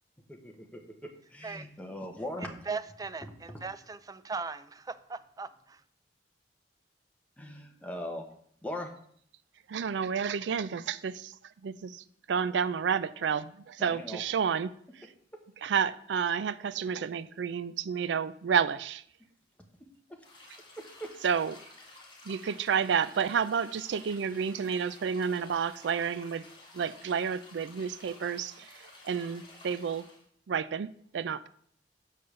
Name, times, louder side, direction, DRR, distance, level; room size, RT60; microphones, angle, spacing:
voice 1, 0.3-2.5 7.4-8.2 8.6-8.9 13.8-14.2 20.8-21.1, left 1 dB, 10° left, 1.1 m, -40 dB
voice 2, 2.4-5.8, right 4 dB, 20° right, 0.4 m, -39 dB
voice 3, 9.7-11.4 11.6-14.7 15.6-19.0 21.2-21.6 22.3-26.5 26.7-30.0 30.5-31.5, right 7 dB, 85° right, 0.4 m, -30 dB
sound 1, 20.2-30.2, left 2 dB, 25° left, 2.2 m, -53 dB
6.5 x 5.5 x 6.7 m
head